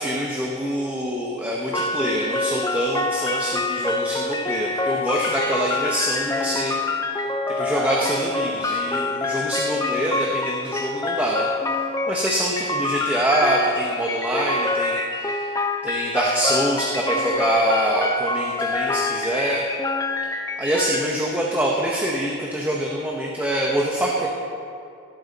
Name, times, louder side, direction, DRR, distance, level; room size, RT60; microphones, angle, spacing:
voice 1, 0.0-6.7 7.6-11.5 12.1-15.5 15.8-19.6 20.6-24.3, right 1 dB, 10° right, -3 dB, 0.9 m, -25 dB
sound 1, 1.7-21.0, left 2 dB, 15° left, 0.5 m, -26 dB
16.5 x 8.3 x 4.1 m, 2.5 s
head